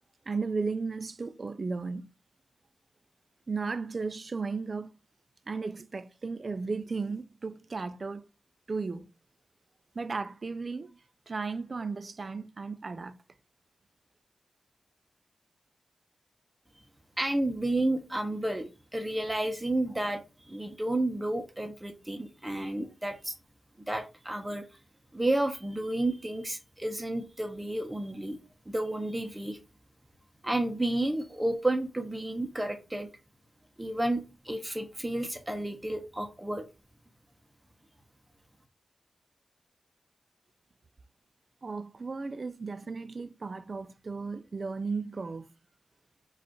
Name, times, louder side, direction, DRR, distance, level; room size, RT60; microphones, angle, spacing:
voice 1, 0.3-2.1 3.5-4.9 5.5-8.2 8.7-9.1 9.9-11.0 11.3-13.2 41.6-45.5, right 4 dB, 45° right, 0.3 m, -35 dB
voice 2, 17.2-23.4 23.9-24.7 25.1-28.4 28.7-29.6 30.4-33.1 33.8-36.6, right 1 dB, 15° right, 0.6 m, -31 dB
4.9 x 2.4 x 4.4 m
wide cardioid pair, 110°, 0 cm